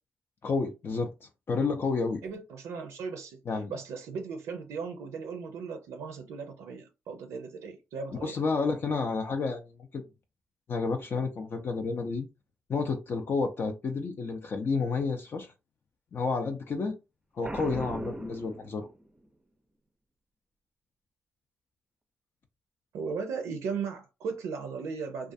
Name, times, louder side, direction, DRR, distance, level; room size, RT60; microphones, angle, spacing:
voice 1, 0.4-2.2 3.5-3.7 8.2-9.6 9.9-10.0 10.7-12.3 12.7-15.5 16.1-17.0 17.3-18.9, left 4 dB, 50° left, 0.4 m, -30 dB
voice 2, 2.2-3.4 3.7-8.4 22.9-25.3, right 5 dB, 85° right, 0.4 m, -37 dB
Boom, 17.4-19.3, right 2 dB, 20° right, 0.4 m, -39 dB
2.4 x 2.3 x 2.5 m
supercardioid pair, 60°, 5 cm